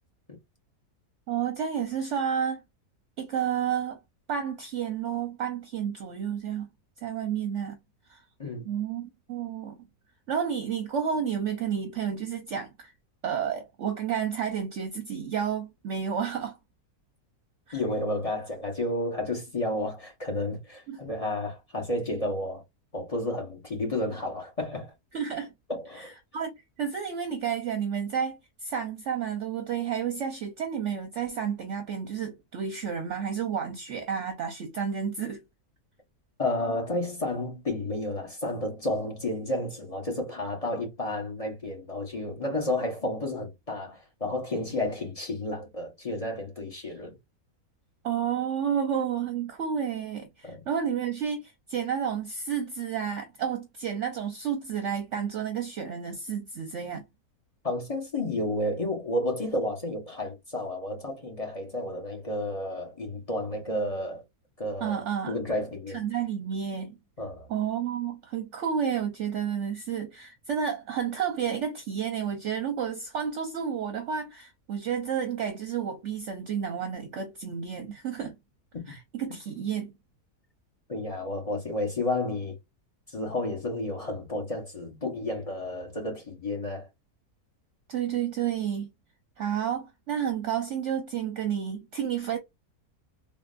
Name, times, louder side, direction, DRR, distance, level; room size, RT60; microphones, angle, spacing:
voice 1, 1.3-2.6 3.2-4.0 4.3-6.7 7.0-7.8 8.1-8.2 8.6-9.8 10.3-12.9 13.2-16.6 17.7-17.8 20.9-21.0 25.1-25.5 25.9-26.5 26.8-35.4 48.0-57.0 64.8-65.4 65.9-67.0 67.5-78.3 78.9-79.9 87.9-88.9 89.4-92.4, right 8 dB, 60° right, 0.9 m, -31 dB
voice 2, 17.7-22.6 22.9-24.9 25.7-26.1 36.4-47.1 50.4-50.6 57.6-64.2 64.6-65.0 65.3-66.0 67.2-67.5 78.7-78.8 80.9-82.5 83.1-86.9, left 1 dB, 30° left, 0.8 m, -31 dB
3.6 x 2.4 x 2.4 m
omnidirectional pair, 1.6 m